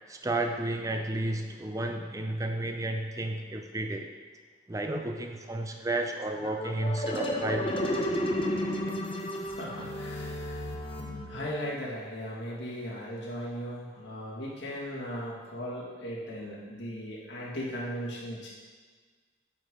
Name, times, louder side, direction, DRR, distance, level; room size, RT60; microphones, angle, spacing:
voice 1, 0.1-4.1 4.7-7.8, right 1 dB, 20° right, 4 dB, 0.6 m, -32 dB
sound 1, 6.3-11.7, equal, 30° left, 0.8 m, -32 dB
voice 2, 9.4-10.7 11.0-18.5, equal, 75° left, -6 dB, 2.1 m, -38 dB
9.4 x 5.4 x 3.8 m, 1.5 s
head